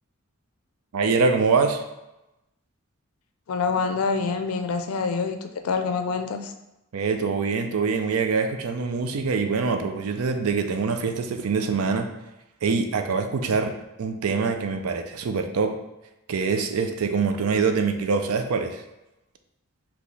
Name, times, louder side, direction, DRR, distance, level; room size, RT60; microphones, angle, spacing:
voice 1, 0.9-1.8 6.9-12.1 12.6-13.7 14.0-15.8 16.3-18.8, right 4 dB, 85° right, 7 dB, 0.4 m, -24 dB
voice 2, 3.5-6.5, left 4 dB, 80° left, 6 dB, 0.4 m, -26 dB
5.2 x 2.8 x 3.2 m, 0.95 s
head